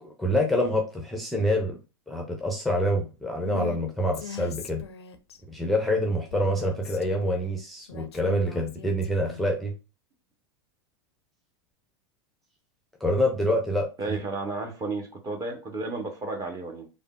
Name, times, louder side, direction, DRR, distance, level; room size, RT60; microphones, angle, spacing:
voice 1, 0.0-1.8 2.1-4.8 5.5-9.7 13.0-14.2, left 1 dB, ahead, 0.5 m, -26 dB
Female speech woman speaking, 3.4-3.8 4.1-5.4 6.3-7.4 7.9-9.5, left 7 dB, 85° left, 0.4 m, -41 dB
voice 2, 14.0-16.9, right 3 dB, 25° right, 0.8 m, -32 dB
3.4 x 2.1 x 2.2 m
hypercardioid pair, 95°, 13 cm